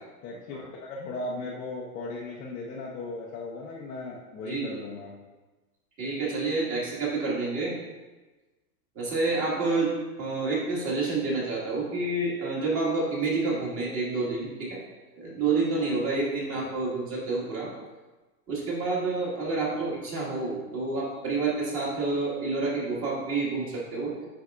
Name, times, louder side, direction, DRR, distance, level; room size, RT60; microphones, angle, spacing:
voice 1, 0.2-5.1 10.2-10.4 16.5-16.8 19.7-19.9, left 2 dB, 20° left, -5 dB, 0.5 m, -37 dB
voice 2, 6.0-7.7 9.0-9.9 10.2-14.8 15.2-17.7 18.5-24.1, right 3 dB, 30° right, -5 dB, 1.9 m, -28 dB
8.1 x 5.2 x 2.5 m, 1.2 s
hypercardioid pair, 140°, 45 cm